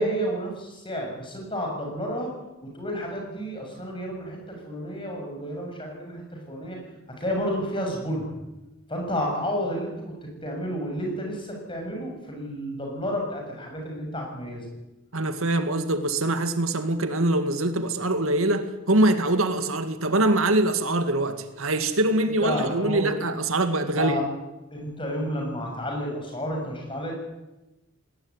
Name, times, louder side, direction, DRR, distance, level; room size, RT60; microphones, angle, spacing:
voice 1, 0.0-2.3 2.6-6.8 7.2-8.3 8.9-10.1 10.4-14.7 22.4-23.1 23.9-24.2 24.7-27.1, equal, 25° left, 1 dB, 7.2 m, -31 dB
voice 2, 15.1-24.2, right 2 dB, 85° right, 8 dB, 2.2 m, -23 dB
20.0 x 19.0 x 9.7 m, 1.0 s
head